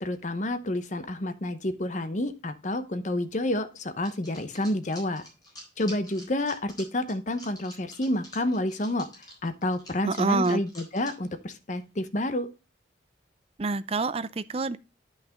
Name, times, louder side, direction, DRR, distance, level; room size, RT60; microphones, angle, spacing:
voice 1, 0.0-5.2 5.8-9.1 9.4-12.5, left 1 dB, 45° left, 0.9 m, -29 dB
sound 1, 4.0-11.3 11.8-11.9 12.1-12.2, left 1 dB, 25° left, 4.1 m, -47 dB
voice 2, 10.1-10.6 13.6-14.8, right 3 dB, 35° right, 0.5 m, -26 dB
10.0 x 5.9 x 3.5 m
head